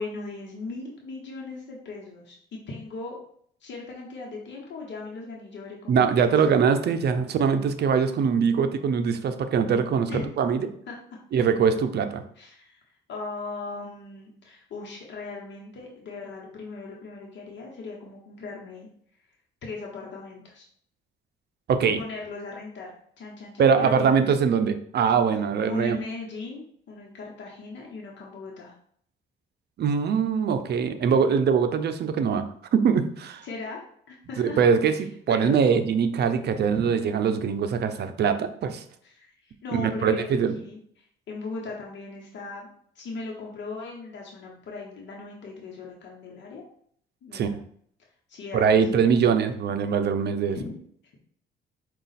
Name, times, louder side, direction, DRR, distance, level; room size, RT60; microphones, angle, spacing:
voice 1, 0.0-3.2 3.6-6.3 10.1-10.3 10.9-11.4 12.4-12.8 13.1-18.9 19.6-20.7 22.0-24.3 25.7-28.7 33.4-34.6 35.3-35.6 36.7-36.9 39.0-42.7 42.9-46.6 47.2-47.5 48.3-49.1 50.5-50.8, left 3 dB, 65° left, -2 dB, 1.0 m, -38 dB
voice 2, 5.9-10.7 11.3-12.2 21.7-22.0 23.6-26.0 29.8-32.4 32.7-33.4 34.4-38.8 39.7-40.5 47.3-47.5 48.5-50.6, right 6 dB, 55° right, 9 dB, 0.5 m, -22 dB
4.9 x 2.4 x 4.0 m, 0.63 s
cardioid pair, 90°, 20 cm